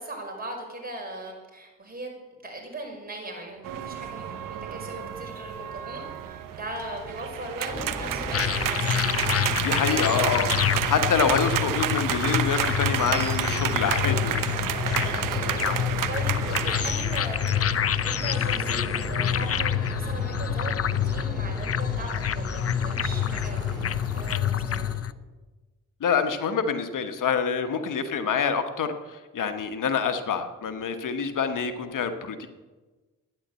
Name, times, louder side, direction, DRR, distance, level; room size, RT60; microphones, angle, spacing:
voice 1, 0.0-2.1 2.4-9.3 15.1-15.8 16.1-24.8, right 1 dB, 30° right, 0 dB, 5.4 m, -39 dB
sound 1, 3.6-22.3, right 10 dB, 85° right, 1.0 m, -31 dB
sound 2, 7.6-24.9, right 1 dB, ahead, 6.4 m, -36 dB
sound 3, 8.3-25.1, left 10 dB, 45° left, 0.6 m, -27 dB
voice 2, 9.6-10.5 10.8-14.6 26.0-32.5, left 6 dB, 75° left, 8 dB, 1.3 m, -26 dB
12.5 x 10.0 x 8.2 m, 1.2 s
cardioid pair, 70°, 32 cm